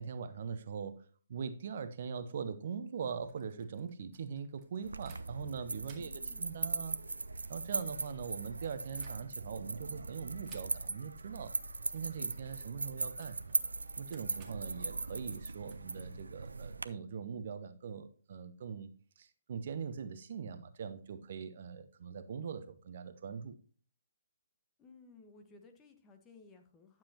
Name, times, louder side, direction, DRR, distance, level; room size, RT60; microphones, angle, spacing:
voice 1, 0.0-6.1 6.4-7.0 7.5-11.6 11.9-13.6 14.0-18.9 19.2-23.6, right 6 dB, 50° right, 11 dB, 0.9 m, -42 dB
sound 1, 3.1-5.5 5.8-9.6 10.4-11.1 11.4-11.6 11.9-16.5, right 6 dB, 25° right, 2.1 m, -63 dB
sound 2, 4.8-16.9, right 3 dB, 75° right, 0.6 m, -39 dB
voice 2, 6.0-6.6 24.8-27.0, left 3 dB, 20° left, 5 dB, 1.5 m, -58 dB
11.5 x 7.4 x 3.0 m, 0.41 s
figure-of-eight pair, 130°, 0 cm